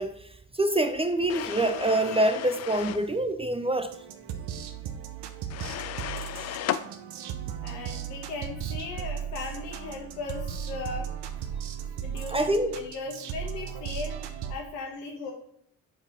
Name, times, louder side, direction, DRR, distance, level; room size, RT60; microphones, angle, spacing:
voice 1, 0.0-3.9 12.3-12.8, right 1 dB, 15° right, 0.5 m, -26 dB
sound 1, 1.3-3.1 5.5-6.9, left 11 dB, 40° left, 0.4 m, -34 dB
sound 2, 3.9-14.6, right 8 dB, 60° right, 0.8 m, -36 dB
voice 2, 7.6-11.1 12.0-14.2 14.5-15.3, left 4 dB, 80° left, 1.4 m, -37 dB
4.8 x 4.4 x 5.2 m
hypercardioid pair, 45°, 46 cm